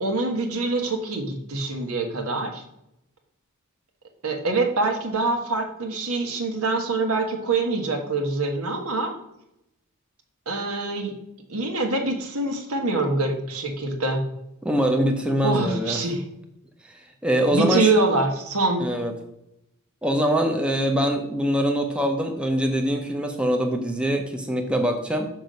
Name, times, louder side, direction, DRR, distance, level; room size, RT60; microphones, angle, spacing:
voice 1, 0.0-2.6 4.2-9.1 10.5-11.1 11.5-14.2 15.4-16.2 17.5-18.9, right 3 dB, 70° right, 4 dB, 1.4 m, -25 dB
voice 2, 14.6-16.0 16.8-17.9 18.8-19.1 20.0-25.3, equal, 5° right, 3 dB, 0.7 m, -23 dB
6.2 x 5.9 x 5.2 m, 0.83 s
head